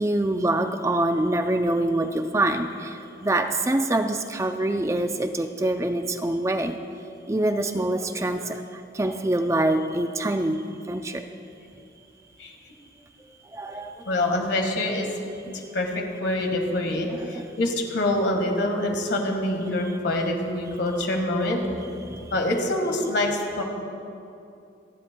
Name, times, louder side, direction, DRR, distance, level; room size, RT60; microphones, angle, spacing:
voice 1, 0.0-6.8 7.3-10.6 10.9-11.2 13.5-14.1 17.2-17.5 22.1-22.3, right 1 dB, 15° right, 6 dB, 0.4 m, -25 dB
voice 2, 12.4-12.7 14.0-15.1 15.4-21.6 22.3-23.6, left 1 dB, 75° left, 2 dB, 1.7 m, -26 dB
28.0 x 11.0 x 2.3 m, 2.6 s
head